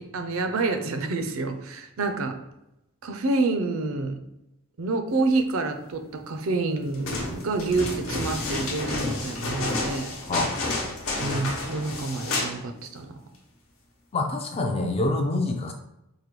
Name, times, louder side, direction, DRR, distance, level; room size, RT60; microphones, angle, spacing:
voice 1, 0.0-2.4 3.0-4.2 4.8-10.1 11.2-13.1, right 3 dB, 65° right, 6 dB, 0.5 m, -28 dB
sound 1, 6.9-12.6 12.9-13.0, left 2 dB, 65° left, 0.8 m, -30 dB
voice 2, 14.1-15.7, left 2 dB, 25° left, 4 dB, 0.3 m, -26 dB
4.8 x 2.2 x 3.0 m, 0.89 s
head